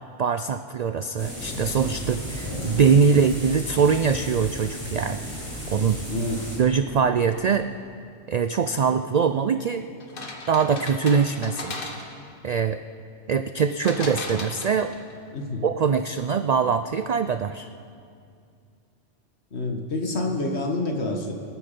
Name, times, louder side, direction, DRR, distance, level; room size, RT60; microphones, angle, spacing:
voice 1, 0.2-5.2 5.7-6.0 6.6-7.7 8.3-9.9 10.5-11.7 12.4-12.8 13.3-14.9 15.6-17.7, right 6 dB, 65° right, 10 dB, 0.4 m, -22 dB
sound 1, 1.2-6.6, equal, 10° left, 5.1 m, -34 dB
voice 2, 6.1-6.6 15.3-15.7 19.5-21.3, left 2 dB, 65° left, 2 dB, 1.9 m, -28 dB
sound 2, 10.0-12.3 13.8-15.1, left 2 dB, 50° left, 1.5 m, -36 dB
26.5 x 9.3 x 5.3 m, 2.4 s
omnidirectional pair, 1.2 m